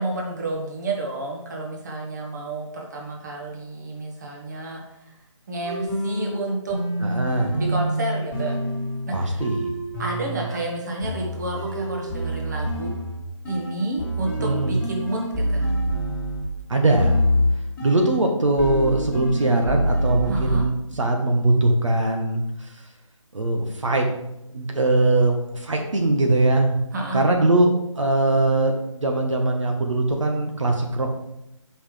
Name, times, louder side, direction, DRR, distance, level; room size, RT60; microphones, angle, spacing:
voice 1, 0.0-5.1 5.5-6.8 7.5-8.6 9.0-9.4 10.0-12.9 13.5-15.7 20.3-20.7 26.9-27.2, right 2 dB, 35° right, 0 dB, 1.5 m, -30 dB
sound 1, 5.6-16.6 17.0-18.3 18.6-20.6, equal, 10° left, 1.9 m, -26 dB
voice 2, 7.0-7.5 9.1-9.7 14.4-14.7 16.7-17.2 17.8-22.8 23.3-24.1 24.5-26.8 27.1-31.2, right 2 dB, 70° right, 2 dB, 1.2 m, -21 dB
8.2 x 5.7 x 3.3 m, 0.85 s
figure-of-eight pair, 160°, 17 cm